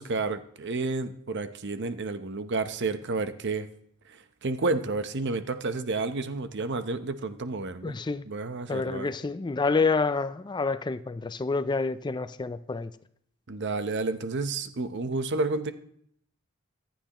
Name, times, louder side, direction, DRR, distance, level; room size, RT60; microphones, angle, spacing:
voice 1, 0.0-3.7 4.1-7.9 8.3-9.1 13.5-15.7, right 3 dB, 55° right, 0.8 m, -30 dB
voice 2, 7.8-8.2 8.7-12.9, left 4 dB, 20° left, 0.4 m, -28 dB
25.0 x 9.0 x 3.0 m
head